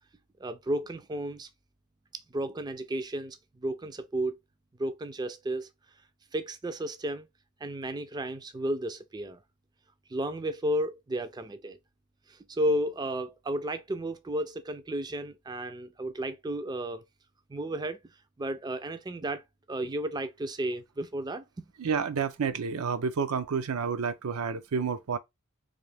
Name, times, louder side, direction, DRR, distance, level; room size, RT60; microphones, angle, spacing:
voice 1, 0.4-1.5 2.1-4.4 4.8-5.7 6.3-7.3 7.6-9.4 10.1-11.8 12.3-17.0 17.5-18.0 18.4-19.4 19.7-21.4, right 1 dB, 20° right, 0.4 m, -33 dB
voice 2, 21.8-25.2, right 6 dB, 85° right, 0.5 m, -30 dB
3.8 x 2.7 x 3.3 m
head